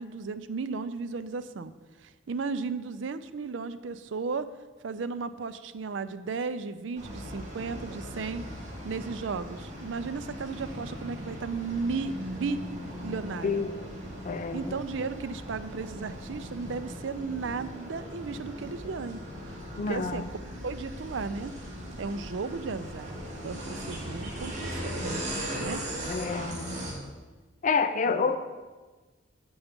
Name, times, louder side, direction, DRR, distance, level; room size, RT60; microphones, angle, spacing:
voice 1, 0.0-1.7 2.0-4.5 4.8-8.4 8.8-12.6 13.0-13.6 14.5-19.2 19.5-19.6 19.9-20.4 20.6-21.5 22.0-25.3 25.5-25.8 28.1-28.4, right 4 dB, 75° right, 13 dB, 0.5 m, -35 dB
sound 1, 7.0-26.9, equal, 40° right, 2.1 m, -39 dB
voice 2, 14.2-14.7 19.8-20.3 26.1-26.8 27.6-28.4, left 5 dB, 40° left, 8 dB, 0.4 m, -28 dB
8.5 x 7.1 x 5.1 m, 1.3 s
head